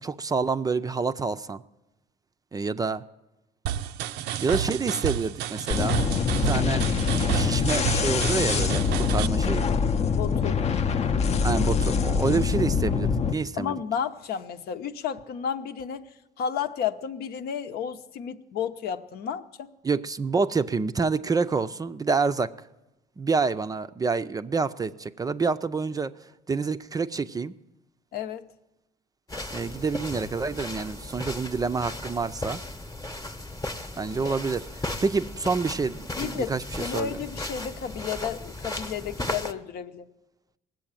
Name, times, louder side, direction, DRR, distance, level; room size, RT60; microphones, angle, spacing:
voice 1, 0.0-1.6 2.5-3.0 4.4-6.0 6.4-6.8 7.3-9.7 11.4-13.8 19.8-22.5 23.2-26.1 26.5-27.5 29.5-32.6 34.0-37.1, right 4 dB, 20° right, 11 dB, 0.4 m, -27 dB
sound 1, 3.7-9.3, right 10 dB, 85° right, 0.5 m, -31 dB
sound 2, 5.7-13.3, left 6 dB, 40° left, 0.6 m, -24 dB
voice 2, 10.1-10.6 13.6-16.0 16.4-19.7 28.1-28.5 36.2-40.1, left 8 dB, 65° left, 9 dB, 0.8 m, -32 dB
sound 3, 29.3-39.5, left 1 dB, 20° left, 1.0 m, -36 dB
18.5 x 7.7 x 8.9 m, 0.97 s
cardioid pair, 110°, 17 cm